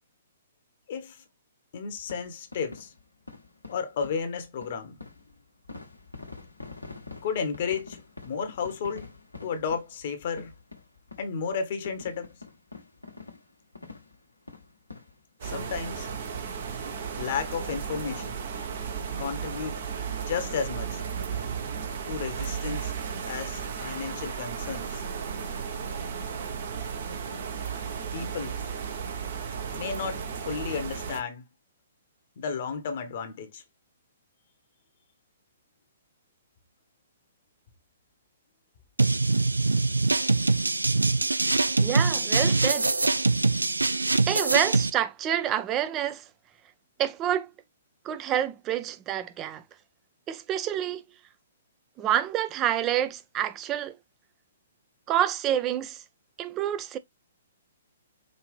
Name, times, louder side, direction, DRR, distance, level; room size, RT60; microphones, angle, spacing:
voice 1, 0.9-1.2 1.7-2.9 3.7-5.0 7.2-9.2 9.4-10.5 11.2-12.3 15.4-16.1 17.2-18.5 19.2-19.8 20.3-21.0 22.1-22.9 23.3-25.0 28.1-28.6 29.7-31.5 32.4-33.6, left 6 dB, 45° left, 1.1 m, -33 dB
sound 1, 2.0-15.9 16.1-16.3 16.7-16.8 17.2-17.4 17.7-18.7 19.1-19.2 19.3-19.4, left 3 dB, 85° left, 1.3 m, -47 dB
sound 2, 15.4-31.2, right 6 dB, 50° right, 1.1 m, -34 dB
sound 3, 39.0-44.9, right 3 dB, 75° right, 0.4 m, -23 dB
voice 2, 41.8-42.9 44.3-46.2 47.0-47.5 48.0-49.6 50.3-51.0 52.0-54.0 55.1-56.0 56.4-57.0, right 11 dB, 25° right, 0.5 m, -28 dB
5.2 x 2.8 x 3.3 m
figure-of-eight pair, 120°, 0 cm